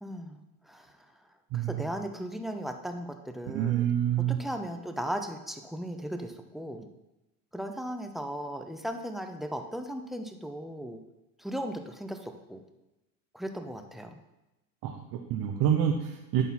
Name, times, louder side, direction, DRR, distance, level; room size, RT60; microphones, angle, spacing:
voice 1, 0.0-1.1 1.5-6.9 7.5-11.0 11.4-12.6 13.3-14.2, equal, ahead, 5 dB, 0.6 m, -37 dB
voice 2, 1.5-1.8 3.5-4.4 14.8-16.4, right 10 dB, 45° right, 2 dB, 0.8 m, -27 dB
11.0 x 4.1 x 4.2 m, 0.97 s
supercardioid pair, 95°, 46 cm